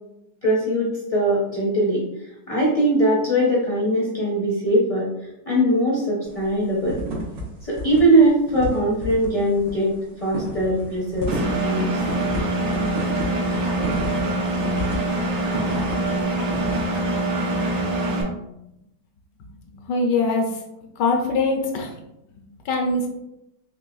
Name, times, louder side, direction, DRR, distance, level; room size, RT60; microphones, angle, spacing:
voice 1, 0.4-2.0 2.5-5.1 5.5-7.0 7.6-9.9 10.2-11.9, right 1 dB, 35° left, -6 dB, 0.5 m, -21 dB
sound 1, 6.2-6.5 6.8-7.4 7.7-8.0 8.3-16.1 16.5-16.8, right 1 dB, 80° right, 1.5 m, -31 dB
Engine, 11.3-18.2, right 1 dB, 55° right, 0.8 m, -24 dB
voice 2, 19.9-20.5 21.0-21.9 22.7-23.1, left 3 dB, 80° left, 2 dB, 1.3 m, -22 dB
4.1 x 3.2 x 2.3 m, 0.87 s
omnidirectional pair, 1.9 m